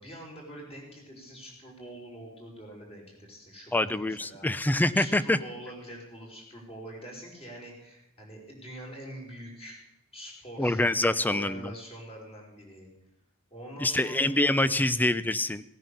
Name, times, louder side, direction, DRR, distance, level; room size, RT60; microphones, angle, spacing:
voice 1, 0.0-9.8 10.1-12.9 13.5-14.3 14.6-14.7, right 1 dB, 25° left, -1 dB, 5.3 m, -45 dB
voice 2, 3.7-5.4 10.6-11.7 13.8-15.6, left 1 dB, 10° left, 15 dB, 0.5 m, -25 dB
18.0 x 9.4 x 6.8 m, 0.84 s
head